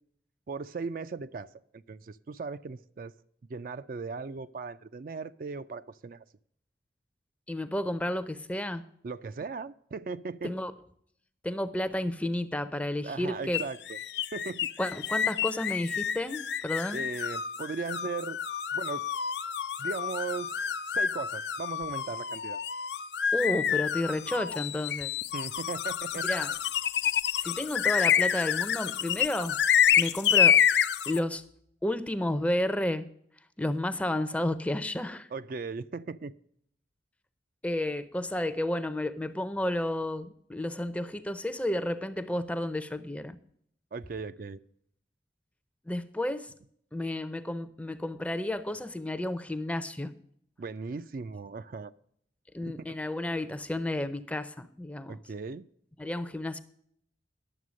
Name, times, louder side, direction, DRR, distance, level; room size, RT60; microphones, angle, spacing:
voice 1, 0.5-3.1 3.5-6.2 9.0-10.5 13.0-14.0 14.3-14.7 16.9-18.4 18.7-19.0 19.8-20.6 20.9-22.6 25.3-26.3 35.3-36.3 43.9-44.6 50.6-51.9 52.6-52.8 55.1-55.6, right 4 dB, 50° right, 12 dB, 0.4 m, -38 dB
voice 2, 7.5-8.8 10.4-10.7 11.4-13.6 14.8-17.0 23.3-25.1 26.2-26.5 27.4-29.6 30.0-30.6 31.1-31.4 31.8-33.1 33.6-35.3 37.6-43.4 45.9-46.5 46.9-50.1 52.5-55.2 56.0-56.6, left 1 dB, 10° left, 12 dB, 0.5 m, -31 dB
sound 1, 13.5-31.2, left 8 dB, 70° left, 0.5 m, -28 dB
11.0 x 7.5 x 6.2 m, 0.68 s
head